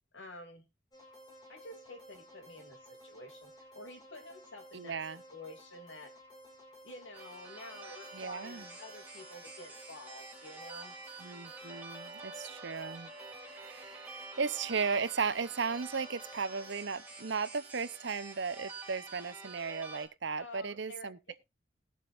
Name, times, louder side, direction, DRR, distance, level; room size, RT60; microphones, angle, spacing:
voice 1, 0.1-0.7 1.5-5.0 5.3-6.1 6.8-10.9 20.4-21.3, left 1 dB, 80° left, 2.7 m, -50 dB
sound 1, 0.9-16.7, equal, 20° left, 4.5 m, -56 dB
voice 2, 4.7-5.2 8.1-8.7 11.2-13.1 13.4-21.3, right 5 dB, 65° right, 0.7 m, -36 dB
sound 2, 7.1-20.1, right 3 dB, 10° right, 2.6 m, -48 dB
20.0 x 7.3 x 2.5 m
head